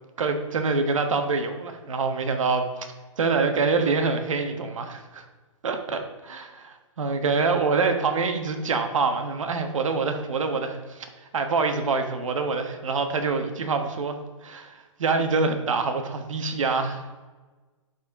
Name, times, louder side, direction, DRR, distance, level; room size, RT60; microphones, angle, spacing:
voice 1, 0.2-2.7 3.2-5.2 5.6-6.0 6.3-11.1 11.3-17.0, right 4 dB, 80° right, 6 dB, 1.3 m, -25 dB
11.5 x 4.4 x 3.7 m, 1.3 s
hypercardioid pair, 155°, 17 cm